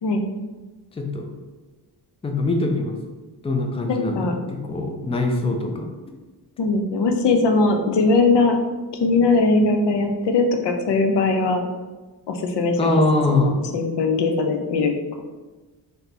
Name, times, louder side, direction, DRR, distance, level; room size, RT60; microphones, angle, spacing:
voice 1, 1.0-1.3 2.2-3.0 3.4-5.9 12.8-13.6, left 2 dB, 15° left, 3 dB, 0.4 m, -23 dB
voice 2, 3.9-4.4 6.6-8.6 9.0-11.6 12.3-13.0 13.3-14.9, left 3 dB, 80° left, 4 dB, 0.6 m, -20 dB
3.3 x 2.9 x 4.1 m, 1.2 s
wide cardioid pair, 115°, 41 cm